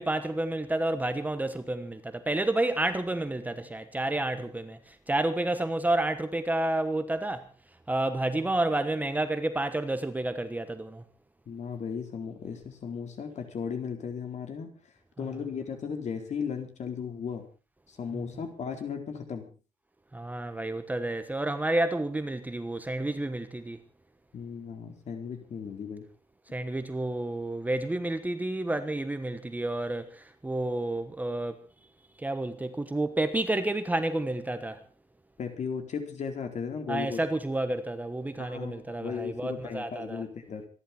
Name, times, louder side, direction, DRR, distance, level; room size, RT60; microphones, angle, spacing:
voice 1, 0.0-7.5 7.9-11.0 18.1-18.2 20.1-23.8 26.5-31.6 32.2-34.8 36.9-40.2, right 2 dB, 10° right, 1.2 m, -30 dB
voice 2, 11.5-14.7 15.2-17.5 17.9-19.5 24.3-26.1 35.4-37.2 38.4-40.7, left 6 dB, 55° left, 4.2 m, -36 dB
26.5 x 11.5 x 4.4 m
wide cardioid pair, 165°, 14 cm